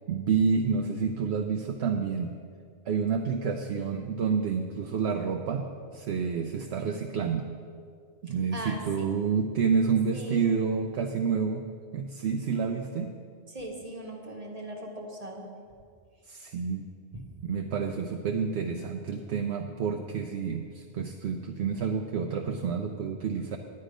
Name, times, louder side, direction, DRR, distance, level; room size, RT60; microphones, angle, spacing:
voice 1, 0.1-2.3 2.9-5.6 5.9-7.5 8.2-11.6 11.9-13.1 16.3-16.8 17.4-23.6, right 6 dB, 75° right, 4 dB, 0.9 m, -29 dB
voice 2, 8.3-9.1 10.1-10.6 13.5-15.5, right 1 dB, 35° right, 1 dB, 1.1 m, -40 dB
9.7 x 9.5 x 5.0 m, 2.2 s
omnidirectional pair, 1.1 m